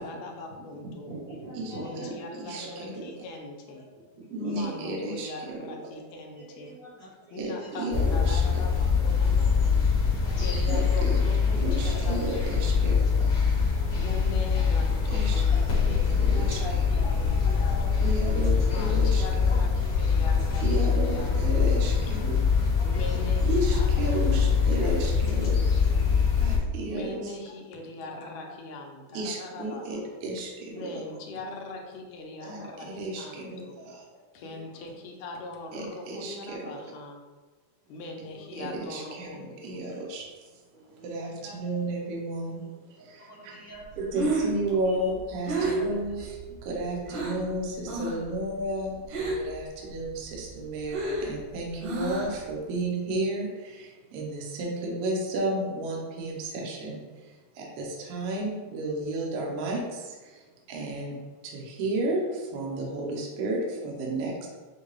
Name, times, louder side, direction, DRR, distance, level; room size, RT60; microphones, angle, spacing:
voice 1, 0.0-1.1 1.7-3.9 4.4-6.7 7.3-9.8 10.3-13.3 13.9-18.0 18.6-21.3 21.6-22.3 22.8-26.0 26.9-30.1 30.7-33.8 34.3-37.2 37.9-39.9, left 2 dB, 75° left, 2 dB, 1.6 m, -41 dB
voice 2, 1.1-2.2 4.2-4.5 6.4-7.8 10.3-11.0 11.6-11.7 13.0-13.1 14.5-14.8 15.3-15.7 16.1-17.1 17.5-18.0 19.5-19.7 20.5-20.6 22.8-23.4 26.4-26.5 28.0-28.2 29.0-29.2 29.6-29.7 30.7-31.1 32.4-32.7 34.1-34.9 38.2-38.4 40.7-41.6 43.0-43.8 44.7-45.1 45.6-45.7 47.0-47.2, right 1 dB, 55° right, -10 dB, 1.3 m, -45 dB
voice 3, 2.4-3.0 4.3-5.8 7.4-8.4 10.7-11.2 11.5-13.3 15.1-16.8 18.0-19.6 20.6-22.5 23.5-25.6 26.4-27.4 29.1-31.0 32.4-34.1 35.7-36.6 38.6-40.3 41.0-43.5 44.0-64.5, right 2 dB, 70° right, -1 dB, 1.5 m, -33 dB
sound 1, 7.9-26.6, left 5 dB, 55° left, 1.2 m, -24 dB
Breathing, 43.9-47.5 47.8-48.3 48.6-49.6 49.9-52.5, right 2 dB, 90° right, 2.5 m, -31 dB
6.4 x 2.2 x 3.1 m, 1.3 s
omnidirectional pair, 3.4 m